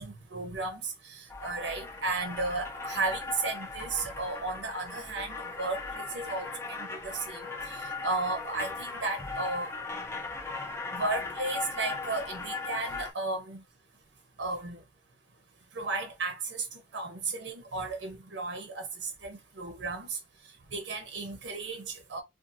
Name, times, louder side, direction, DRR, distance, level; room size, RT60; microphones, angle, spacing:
voice 1, 0.0-9.7 10.9-13.6 14.4-14.8 15.7-20.2 20.7-22.2, right 3 dB, 75° right, 0.7 m, -34 dB
sound 1, 1.3-13.1, left 3 dB, 15° left, 0.5 m, -38 dB
2.6 x 2.4 x 2.6 m
head